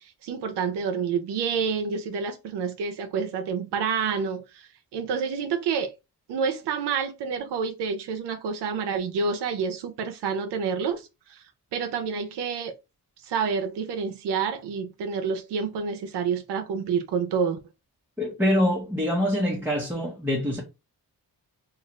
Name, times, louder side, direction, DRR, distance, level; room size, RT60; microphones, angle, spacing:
voice 1, 0.0-5.9 6.3-11.4 11.7-12.7 13.2-17.6, right 6 dB, 90° right, 0.6 m, -28 dB
voice 2, 18.2-20.6, left 1 dB, 5° right, 0.9 m, -25 dB
2.4 x 2.4 x 3.1 m
cardioid pair, 60°, 40 cm